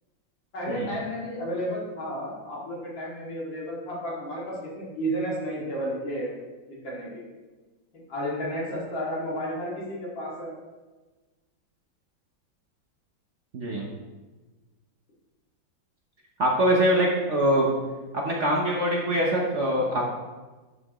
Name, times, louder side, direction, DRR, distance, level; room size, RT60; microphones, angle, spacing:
voice 1, 0.5-6.3 6.7-7.2 8.1-10.5, equal, 75° left, -6 dB, 3.1 m, -32 dB
voice 2, 13.5-13.9 16.4-17.7 18.1-20.1, equal, 50° right, -2 dB, 1.0 m, -23 dB
11.0 x 5.9 x 3.0 m, 1.2 s
omnidirectional pair, 2.1 m